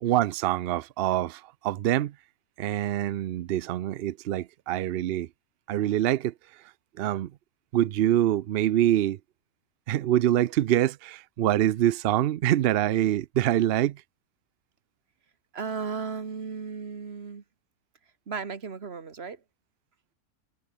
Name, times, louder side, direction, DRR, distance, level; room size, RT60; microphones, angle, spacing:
voice 1, 0.0-2.1 2.6-5.3 5.7-7.3 7.7-9.2 9.9-14.0, right 12 dB, 80° right, 0.5 m, -25 dB
voice 2, 15.5-17.4 18.3-19.4, right 5 dB, 45° right, 1.7 m, -35 dB
omnidirectional pair, 1.6 m